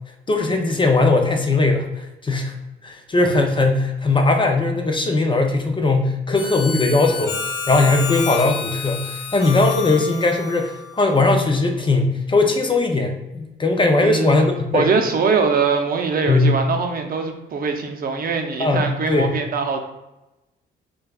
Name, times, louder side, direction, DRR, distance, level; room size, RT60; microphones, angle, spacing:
voice 1, 0.3-2.6 2.8-7.4 7.7-14.9 16.3-16.5 18.6-19.4, left 3 dB, 25° left, 3 dB, 0.6 m, -19 dB
Harmonica, 6.3-11.5, left 5 dB, 85° left, 0.9 m, -30 dB
voice 2, 14.0-14.4 14.7-19.8, right 4 dB, 45° right, 4 dB, 0.6 m, -22 dB
6.3 x 2.3 x 2.3 m, 0.97 s
cardioid pair, 90°, 20 cm